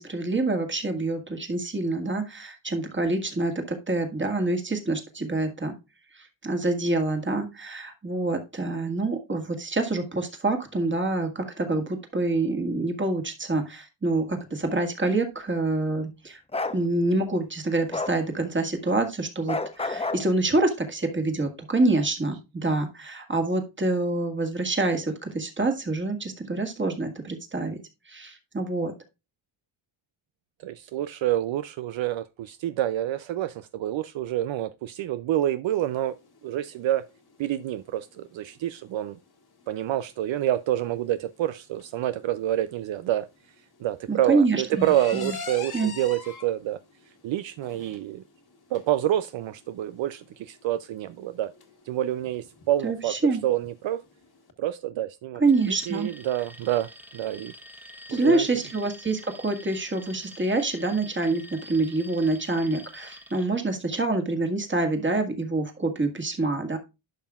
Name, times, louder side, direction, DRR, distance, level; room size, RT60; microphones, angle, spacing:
voice 1, 0.0-5.7 6.1-16.4 16.7-27.8 28.1-28.9 44.1-44.8 45.1-45.4 45.7-45.9 52.8-53.4 55.4-56.1 58.1-66.8, right 2 dB, 25° right, 1.7 m, -26 dB
Bark, 16.5-16.8 17.9-18.2 19.5-20.3, left 3 dB, 15° left, 0.6 m, -29 dB
voice 2, 30.6-36.2 36.4-37.0 37.4-39.2 39.7-43.3 43.8-46.8 47.2-48.2 48.7-51.5 51.9-54.0 54.6-57.5 58.1-58.6, right 13 dB, 70° right, 0.5 m, -28 dB
sound 1, 35.9-54.5, left 5 dB, 50° left, 1.6 m, -46 dB
Alarm, 55.5-63.5, equal, 5° right, 1.3 m, -47 dB
11.5 x 5.6 x 2.3 m
cardioid pair, 95°, 48 cm